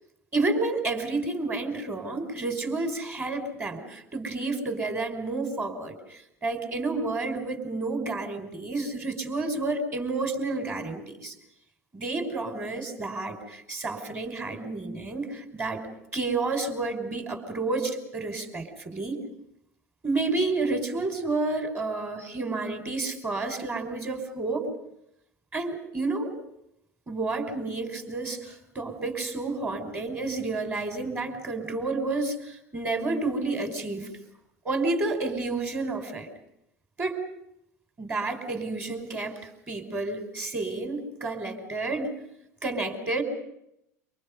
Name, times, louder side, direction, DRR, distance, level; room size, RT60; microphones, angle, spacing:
voice 1, 0.3-11.3 11.9-15.8 16.1-19.2 20.0-24.7 25.5-26.3 27.1-34.1 34.6-36.3 37.0-37.2 38.0-42.1 42.6-43.2, right 3 dB, 25° right, 6 dB, 5.4 m, -30 dB
28.0 x 25.5 x 5.4 m, 0.80 s
hypercardioid pair, 80°, 9 cm